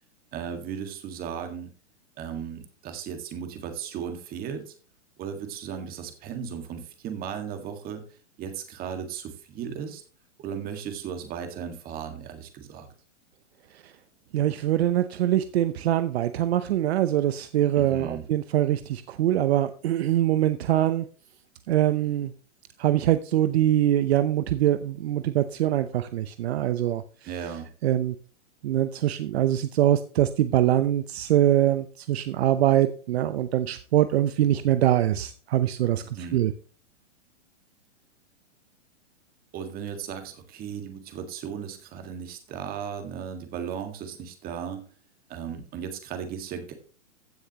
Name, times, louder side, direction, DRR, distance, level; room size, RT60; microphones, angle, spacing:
voice 1, 0.3-1.7 2.2-4.7 5.2-10.0 10.4-12.9 17.8-18.2 27.2-27.7 36.0-36.5 39.5-44.8 45.3-46.7, right 7 dB, 25° right, 7 dB, 1.8 m, -36 dB
voice 2, 14.3-21.1 21.7-22.3 22.8-27.0 27.8-28.1 28.6-36.0 36.3-36.5, right 12 dB, 60° right, 11 dB, 0.8 m, -23 dB
15.5 x 6.6 x 3.0 m, 0.38 s
hypercardioid pair, 145°, 36 cm